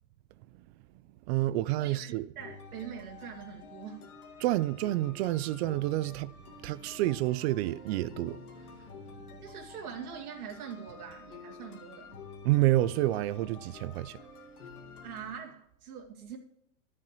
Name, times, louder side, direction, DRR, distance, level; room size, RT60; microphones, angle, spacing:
voice 1, 1.1-2.3 4.4-8.9 9.3-9.4 12.4-14.2, right 16 dB, 45° right, 0.5 m, -29 dB
voice 2, 1.8-4.1 9.4-12.2 15.0-16.4, right 7 dB, 85° right, 2.3 m, -43 dB
sound 1, 2.4-15.4, left 4 dB, 90° left, 2.2 m, -49 dB
14.0 x 7.5 x 3.1 m
hypercardioid pair, 130°, 43 cm